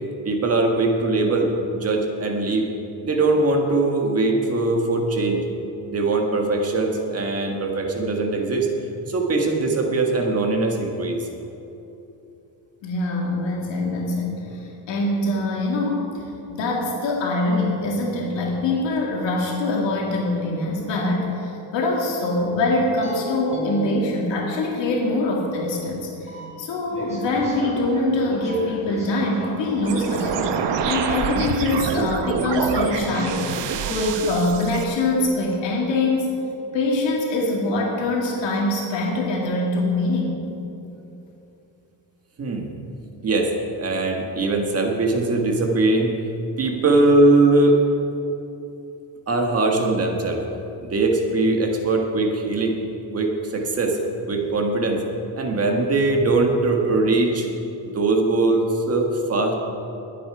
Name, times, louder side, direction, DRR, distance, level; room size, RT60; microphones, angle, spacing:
voice 1, 0.2-2.7 3.0-5.4 5.9-8.7 9.1-11.3 42.4-42.7 43.2-46.2 46.6-47.8 49.3-50.4 50.8-52.8 53.1-54.0 54.3-55.0 55.3-57.5 57.9-59.5, right 2 dB, 35° right, 2 dB, 1.5 m, -21 dB
voice 2, 12.8-16.2 16.5-33.5 33.9-36.3 36.7-40.4, left 2 dB, 75° left, -2 dB, 2.3 m, -24 dB
sound 1, 23.0-25.0 26.3-26.5 26.9-30.4, left 1 dB, 15° right, 3.2 m, -35 dB
sound 2, 29.8-34.8, right 6 dB, 70° right, 1.1 m, -26 dB
21.5 x 8.5 x 4.8 m, 2.9 s
cardioid pair, 170°, 44 cm